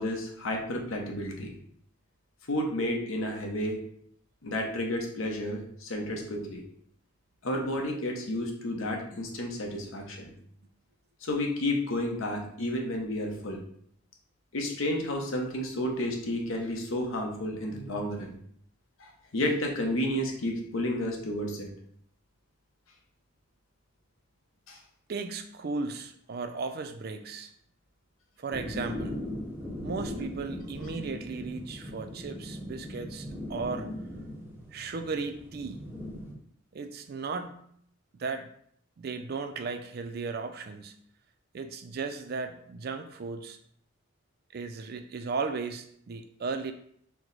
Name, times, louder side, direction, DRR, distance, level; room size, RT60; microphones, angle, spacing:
voice 1, 0.0-1.5 2.5-3.8 4.4-6.6 7.4-10.3 11.2-13.6 14.5-18.3 19.0-21.7 24.7-24.8, left 1 dB, 75° left, 1 dB, 0.8 m, -31 dB
voice 2, 25.1-27.5 28.4-29.2 29.8-33.9 34.7-35.8 36.7-37.6 38.2-38.5 39.0-40.9 41.5-43.6 44.5-46.7, right 4 dB, 45° right, 8 dB, 0.4 m, -35 dB
sound 1, 28.5-36.3, left 1 dB, 10° right, 0.6 m, -39 dB
4.6 x 2.1 x 3.9 m, 0.66 s
head